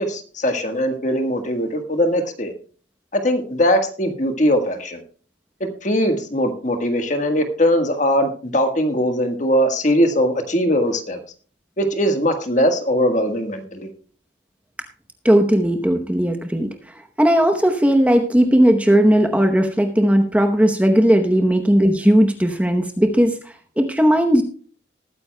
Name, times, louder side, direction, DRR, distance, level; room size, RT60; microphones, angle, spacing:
voice 1, 0.0-2.5 3.1-5.0 5.8-11.2 11.8-13.9, equal, 40° left, 6 dB, 1.4 m, -20 dB
voice 2, 15.2-24.4, equal, 5° right, 5 dB, 0.8 m, -17 dB
20.0 x 9.5 x 2.2 m, 0.42 s
head